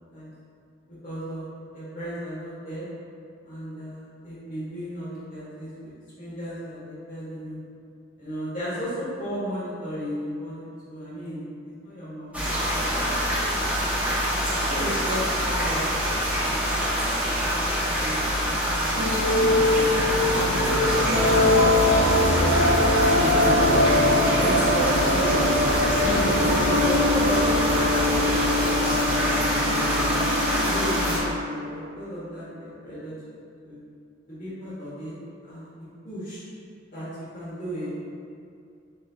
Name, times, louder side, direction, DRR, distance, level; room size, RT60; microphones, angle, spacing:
voice 1, 0.9-2.9 3.4-5.9 6.2-7.6 8.2-13.1 13.5-13.7 14.0-14.2 14.7-17.0 17.4-19.0 19.3-20.9 21.4-22.0 23.0-25.5 26.0-29.5 30.1-33.1 33.6-33.8 34.3-35.1 35.4-35.7 36.0-36.4 36.9-37.9, equal, 45° left, -11 dB, 1.4 m, -35 dB
sound 1, 12.3-31.2, equal, 5° right, 0.9 m, -25 dB
sound 2, 18.9-31.9, left 1 dB, 70° right, 0.7 m, -22 dB
8.2 x 2.7 x 2.3 m, 2.4 s
head